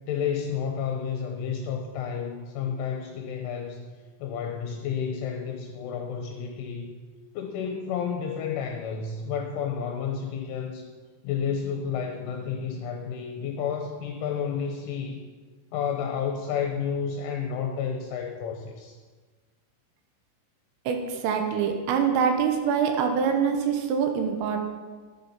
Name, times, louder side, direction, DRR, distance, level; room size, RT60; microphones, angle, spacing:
voice 1, 0.1-3.8 4.2-7.0 7.3-10.9 11.2-15.2 15.7-19.0, left 7 dB, 80° left, 3 dB, 3.2 m, -31 dB
voice 2, 20.9-24.6, right 6 dB, 80° right, 4 dB, 3.7 m, -25 dB
11.0 x 10.0 x 5.8 m, 1.4 s
omnidirectional pair, 5.8 m